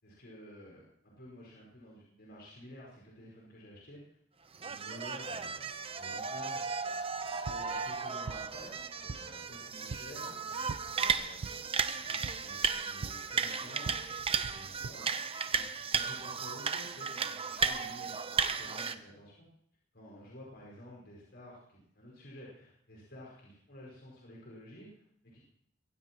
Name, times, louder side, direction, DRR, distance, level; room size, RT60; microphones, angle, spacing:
voice 1, 0.0-4.2 4.6-5.7 6.0-6.6 7.5-10.5 11.0-11.6 12.0-14.0 14.4-15.1 15.5-19.4 19.9-25.4, equal, 60° left, -4 dB, 5.2 m, -51 dB
sound 1, 4.5-18.9, right 5 dB, 30° right, 0.8 m, -35 dB
sound 2, 7.1-14.9, right 4 dB, 65° right, 0.5 m, -46 dB
23.5 x 15.5 x 3.1 m, 0.69 s
head